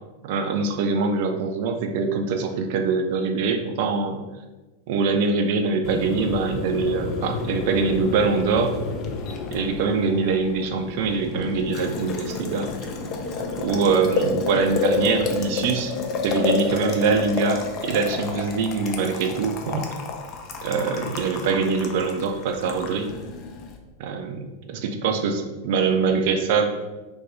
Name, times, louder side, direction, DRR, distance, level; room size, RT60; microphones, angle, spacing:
voice 1, 0.2-4.2 4.9-8.7 9.5-12.7 13.6-15.9 16.2-19.9 20.6-23.1 24.0-26.7, right 4 dB, 50° right, 5 dB, 0.4 m, -23 dB
Boiling, 5.8-23.8, left 4 dB, 35° left, 0.4 m, -30 dB
2.6 x 2.3 x 3.9 m, 1.2 s
figure-of-eight pair, 90°, 0 cm